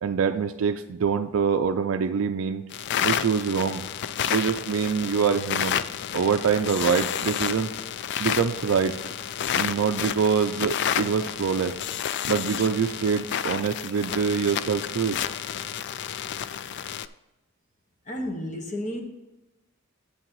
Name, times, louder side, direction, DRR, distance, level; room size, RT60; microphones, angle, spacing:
voice 1, 0.0-2.6 3.0-3.8 4.2-5.8 6.1-7.7 8.2-9.0 9.6-11.8 12.3-15.2, right 6 dB, 65° right, 5 dB, 0.4 m, -25 dB
sound 1, 2.7-17.1, left 9 dB, 55° left, 0.3 m, -30 dB
voice 2, 18.1-19.0, left 1 dB, 35° left, 2 dB, 1.4 m, -31 dB
10.5 x 8.2 x 3.1 m, 0.99 s
head